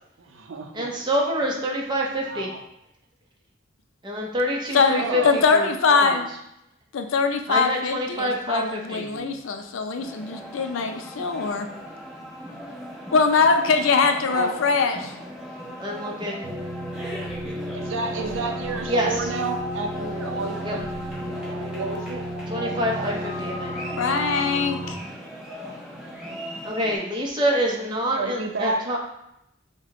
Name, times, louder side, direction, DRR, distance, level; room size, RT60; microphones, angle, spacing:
voice 1, 0.2-1.0 2.2-2.6 4.9-5.4 8.9-9.4 14.3-14.6 17.7-20.9 21.5-22.2 22.6-23.2 25.9-26.2 27.8-29.0, right 4 dB, 75° right, 5 dB, 0.5 m, -32 dB
voice 2, 0.7-2.5 4.0-6.2 7.5-9.0 15.8-16.4 18.9-19.1 20.7-20.8 22.5-23.8 26.6-29.0, equal, 25° right, -1 dB, 0.7 m, -26 dB
voice 3, 4.7-6.3 6.9-11.7 13.1-15.1 24.0-25.0, left 4 dB, 90° left, 6 dB, 0.5 m, -22 dB
sound 1, 10.0-27.0, equal, 5° right, 1.0 m, -38 dB
sound 2, 16.4-24.9, equal, 50° right, 1.1 m, -33 dB
5.0 x 2.2 x 3.6 m, 0.81 s
head